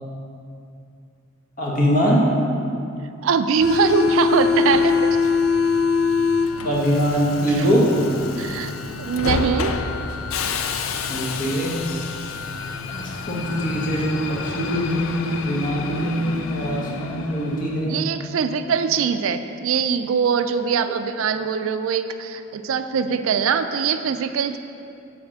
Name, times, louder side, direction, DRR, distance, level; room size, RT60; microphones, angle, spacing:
voice 1, 1.6-2.2 6.6-7.8 11.1-11.8 12.9-17.9 20.7-20.9, equal, 40° left, -4 dB, 1.4 m, -22 dB
voice 2, 3.2-5.2 7.5-7.7 8.4-8.7 9.0-9.7 17.8-24.6, right 6 dB, 75° right, 9 dB, 0.3 m, -22 dB
Subway metro underground, 3.6-17.9, left 5 dB, 80° left, 0.4 m, -25 dB
7.1 x 4.3 x 6.2 m, 2.5 s
head